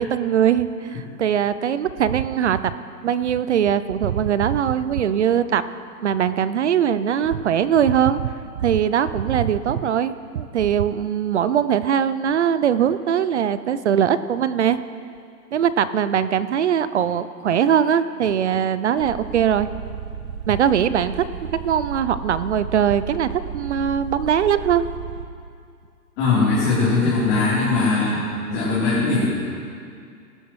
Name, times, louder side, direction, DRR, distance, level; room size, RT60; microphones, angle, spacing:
voice 1, 0.0-2.7 3.0-5.6 6.0-8.3 8.6-14.8 15.5-19.7 20.5-21.2 21.6-24.8, right 9 dB, 50° right, 14 dB, 0.4 m, -21 dB
sound 1, 19.0-25.3, right 7 dB, 75° right, 1.4 m, -34 dB
voice 2, 26.2-29.3, left 3 dB, 30° left, -10 dB, 3.5 m, -20 dB
19.0 x 12.5 x 3.1 m, 2.4 s
hypercardioid pair, 150°, 48 cm